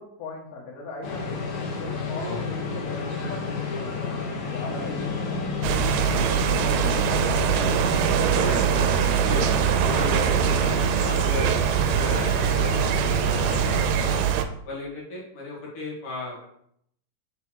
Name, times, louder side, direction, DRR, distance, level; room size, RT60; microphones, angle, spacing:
voice 1, 0.0-1.4 1.7-5.5 6.0-6.4, left 3 dB, 85° left, -3 dB, 2.8 m, -40 dB
sound 1, 1.0-14.2, left 4 dB, 65° left, 2.2 m, -31 dB
voice 2, 2.2-2.8 4.8-5.2 6.1-7.8 8.3-14.0 14.6-16.5, left 2 dB, 45° left, -4 dB, 2.4 m, -36 dB
sound 2, 5.6-14.4, right 9 dB, 85° right, 2.2 m, -23 dB
6.0 x 3.5 x 4.5 m, 0.70 s
omnidirectional pair, 3.7 m